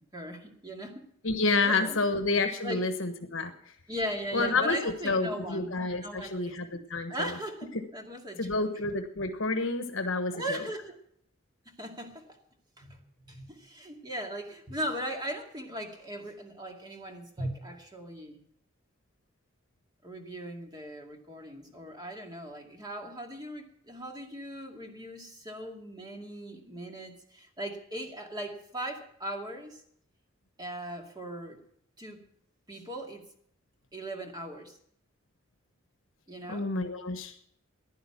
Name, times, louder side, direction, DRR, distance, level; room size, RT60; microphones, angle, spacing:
voice 1, 0.0-1.1 1.6-2.1 2.6-2.8 3.9-6.8 7.1-8.7 9.5-9.6 10.3-11.0 11.7-12.4 12.8-18.4 20.0-29.8 30.6-31.6 32.0-32.2 32.7-33.3 33.9-34.8 36.3-36.7, right 1 dB, 20° right, 2 dB, 2.2 m, -39 dB
voice 2, 1.2-3.5 4.3-4.8 5.0-7.3 8.4-10.6 36.5-37.3, left 3 dB, 70° left, 7 dB, 1.3 m, -29 dB
15.0 x 11.0 x 6.0 m, 0.67 s
head